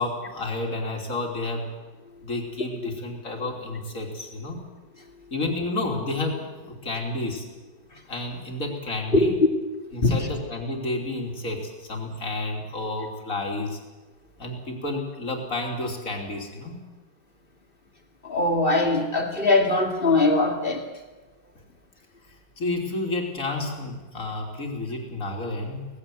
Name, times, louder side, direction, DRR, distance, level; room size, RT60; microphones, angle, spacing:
voice 1, 0.0-1.7 2.2-4.6 5.3-7.5 8.1-9.4 9.9-13.8 14.4-16.8 22.6-25.9, left 2 dB, 45° left, 1 dB, 3.6 m, -30 dB
voice 2, 18.3-20.8, left 2 dB, 30° left, 3 dB, 2.5 m, -21 dB
18.5 x 16.0 x 9.3 m, 1.2 s
omnidirectional pair, 2.0 m